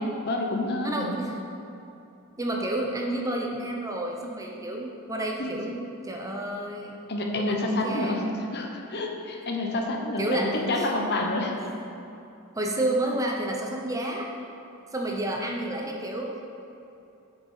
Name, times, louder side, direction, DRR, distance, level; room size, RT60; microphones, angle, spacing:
voice 1, 0.2-1.1 5.4-5.5 7.1-8.2 8.5-11.5, left 2 dB, 50° left, 2 dB, 1.0 m, -28 dB
voice 2, 0.8-1.4 2.4-7.0 7.3-8.3 10.2-10.9 12.6-14.3 14.9-16.4, right 1 dB, 15° right, 0 dB, 0.8 m, -30 dB
7.9 x 6.9 x 5.6 m, 2.8 s
head